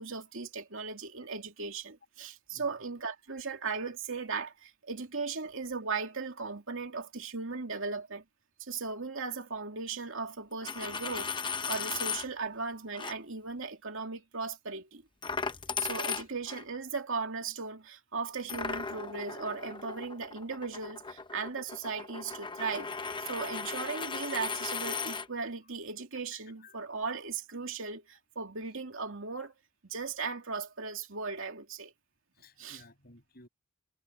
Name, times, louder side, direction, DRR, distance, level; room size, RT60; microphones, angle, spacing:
voice 1, 0.0-8.2 8.6-15.0 15.8-22.9 23.2-29.5 29.8-31.9 32.6-32.8, right 4 dB, 65° right, 2.7 m, -37 dB
Coin (dropping), 10.5-12.3 12.9-13.1 15.2-16.6 18.5-25.3, left 5 dB, 25° left, 0.8 m, -37 dB
voice 2, 15.7-16.1 26.3-26.8 32.3-33.5, left 3 dB, 50° left, 6.4 m, -57 dB
head